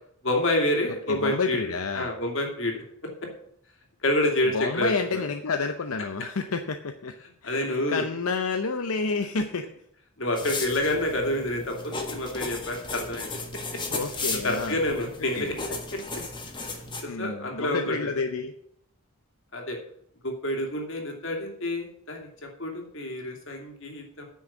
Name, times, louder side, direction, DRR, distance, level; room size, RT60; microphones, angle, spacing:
voice 1, 0.2-2.8 4.0-5.2 7.4-8.0 10.2-13.4 14.4-15.5 15.9-16.0 17.0-18.1 19.5-19.8 20.2-22.3 22.6-24.3, left 1 dB, 60° left, 2 dB, 2.7 m, -28 dB
voice 2, 1.1-2.1 4.5-7.1 7.4-9.6 13.9-14.8 15.3-15.6 17.1-18.5, left 4 dB, 85° left, 7 dB, 0.8 m, -29 dB
sound 1, 10.3-17.0, left 3 dB, 20° left, 1.5 m, -35 dB
9.4 x 6.4 x 7.3 m, 0.68 s
head